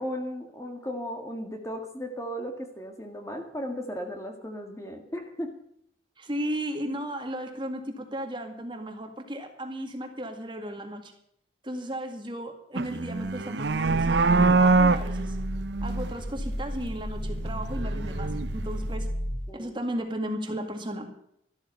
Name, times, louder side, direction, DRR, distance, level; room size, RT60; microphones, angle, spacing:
voice 1, 0.0-5.6 19.5-19.8, equal, 15° left, 4 dB, 1.8 m, -36 dB
voice 2, 6.2-11.1 11.6-15.4 15.8-19.1 19.5-21.1, right 1 dB, 25° right, 4 dB, 1.9 m, -35 dB
sound 1, 12.8-16.2 17.3-18.9, right 3 dB, 75° right, 0.7 m, -25 dB
Growling, 13.2-19.5, equal, 45° left, 4.6 m, -33 dB
13.5 x 12.5 x 5.4 m, 0.71 s
head